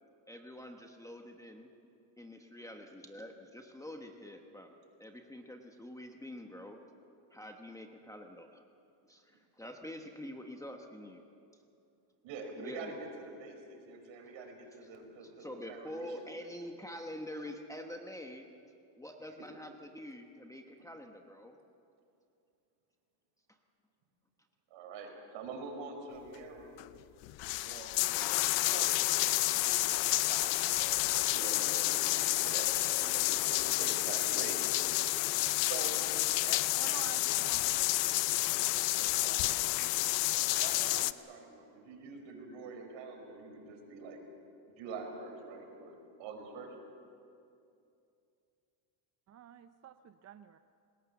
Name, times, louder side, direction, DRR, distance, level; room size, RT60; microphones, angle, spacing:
voice 1, 0.3-1.7 2.2-6.8 7.3-8.6 9.1-11.2 12.6-13.0 15.2-18.5 19.0-21.6, left 1 dB, 5° left, 3 dB, 1.1 m, -46 dB
voice 2, 12.2-16.5 19.4-19.5 24.7-26.8 27.6-27.9 28.6-34.6 35.6-36.0 36.3-37.2 38.5-39.9 40.6-44.2 44.8-46.7, right 3 dB, 65° right, 3 dB, 5.5 m, -46 dB
sound 1, 26.8-26.9 27.2-41.1, left 18 dB, 65° left, 0.7 m, -30 dB
voice 3, 36.8-38.2 49.3-50.6, right 9 dB, 35° right, 10 dB, 0.5 m, -50 dB
27.5 x 20.0 x 7.1 m, 2.6 s
cardioid pair, 150°, 48 cm